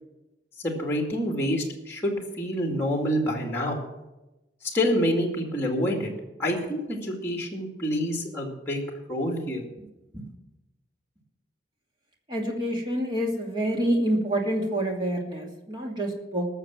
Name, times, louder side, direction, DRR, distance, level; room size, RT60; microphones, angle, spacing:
voice 1, 0.6-3.8 4.7-6.1 6.4-8.8 9.1-9.6, equal, 15° left, 1 dB, 2.2 m, -27 dB
voice 2, 12.3-16.5, right 1 dB, 25° right, 0 dB, 2.5 m, -27 dB
19.5 x 6.8 x 7.4 m, 1.0 s
head